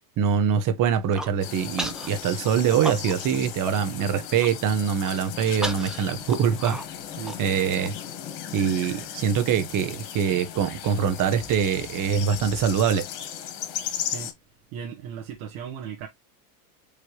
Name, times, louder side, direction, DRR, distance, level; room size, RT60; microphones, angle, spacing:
voice 1, 0.0-6.8 7.4-7.9 8.5-13.0, right 7 dB, 45° right, 1.4 m, -24 dB
Human voice, 1.0-1.3 1.8-2.1 2.4-3.4 3.7-3.8 4.1-4.5 5.0-7.9, equal, ahead, 0.8 m, -34 dB
sound 1, 1.4-14.3, left 9 dB, 65° left, 1.7 m, -36 dB
voice 2, 14.0-14.3 14.7-16.1, right 8 dB, 60° right, 1.5 m, -37 dB
5.1 x 3.4 x 3.1 m
hypercardioid pair, 100°, 44 cm